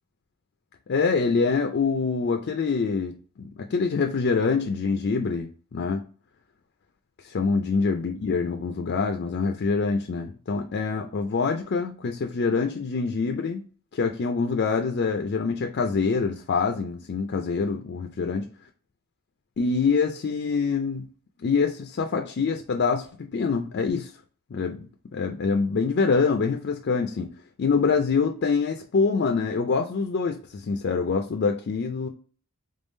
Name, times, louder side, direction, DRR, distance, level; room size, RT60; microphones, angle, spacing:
voice 1, 0.9-6.0 7.2-13.6 13.9-18.4 19.6-21.1 21.4-24.1 24.5-24.9 25.1-27.3 27.6-32.1, left 4 dB, 50° left, 0.4 m, -25 dB
3.6 x 3.6 x 2.6 m
head